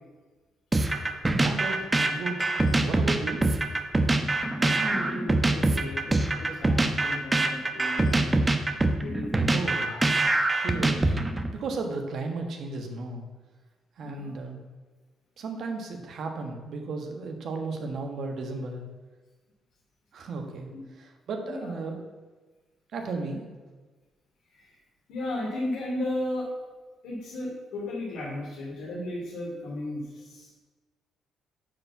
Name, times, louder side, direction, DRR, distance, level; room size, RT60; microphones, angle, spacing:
sound 1, 0.7-11.5, right 2 dB, 20° right, 0.9 m, -24 dB
voice 1, 1.3-3.5 9.5-10.0 10.6-11.0 11.5-13.2 14.0-14.6 15.4-18.8 20.1-20.7 21.0-22.0 22.9-23.4, right 3 dB, 65° right, 3 dB, 1.5 m, -34 dB
voice 2, 4.5-8.4 8.9-9.5 9.8-10.0 14.0-14.3 20.7-20.8 21.4-21.7 24.6-24.7 25.1-26.5 27.0-30.6, left 1 dB, 90° left, -6 dB, 2.7 m, -35 dB
9.6 x 4.6 x 7.2 m, 1.3 s
cardioid pair, 90°, 0 cm